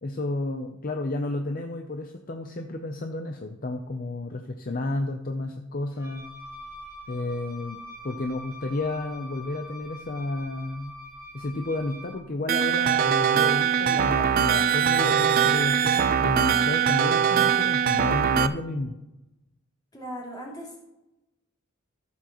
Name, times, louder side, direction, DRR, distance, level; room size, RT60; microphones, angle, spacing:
voice 1, 0.0-6.3 7.1-7.8 8.0-10.9 11.3-19.0, left 2 dB, 40° left, 4 dB, 0.6 m, -31 dB
Wind instrument woodwind instrument, 5.9-12.2, left 1 dB, 15° right, 3.9 m, -44 dB
sound 1, 12.5-18.5, right 8 dB, 45° right, 0.4 m, -22 dB
voice 2, 19.9-20.8, equal, 20° left, -4 dB, 2.7 m, -38 dB
14.0 x 7.2 x 3.0 m, 0.95 s
head